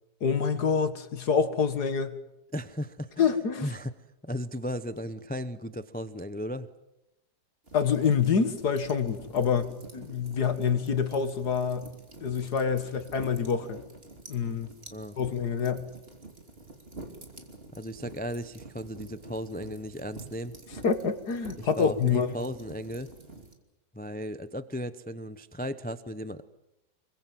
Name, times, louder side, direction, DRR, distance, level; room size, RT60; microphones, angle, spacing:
voice 1, 0.2-2.2 3.2-3.7 7.7-11.9 12.2-13.8 14.3-14.7 15.2-15.9 20.8-22.4, left 6 dB, 70° left, 10 dB, 2.3 m, -27 dB
voice 2, 2.5-3.3 3.6-3.9 4.2-6.7 14.9-15.2 17.8-20.5 21.6-23.1 23.9-26.4, equal, 10° left, 12 dB, 0.6 m, -35 dB
sound 1, 7.7-23.5, right 2 dB, 35° right, 3.1 m, -48 dB
27.0 x 23.0 x 7.7 m, 0.89 s
omnidirectional pair, 1.8 m